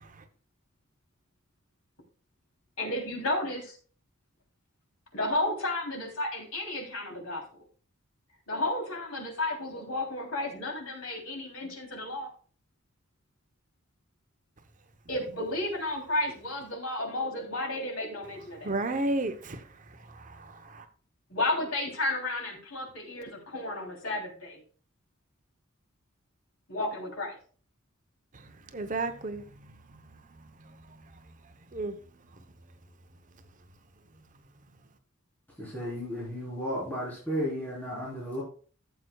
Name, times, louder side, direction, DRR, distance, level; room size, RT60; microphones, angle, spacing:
voice 1, 2.8-3.8 5.1-7.4 8.5-12.3 15.1-18.7 21.3-24.6 26.7-27.4, left 2 dB, 90° left, 3.2 m, -32 dB
voice 2, 18.6-19.6 20.5-20.8 28.7-29.4 31.7-31.9, right 2 dB, 40° right, 0.8 m, -31 dB
voice 3, 35.6-38.4, equal, 10° left, 3.7 m, -33 dB
14.0 x 7.7 x 2.3 m
head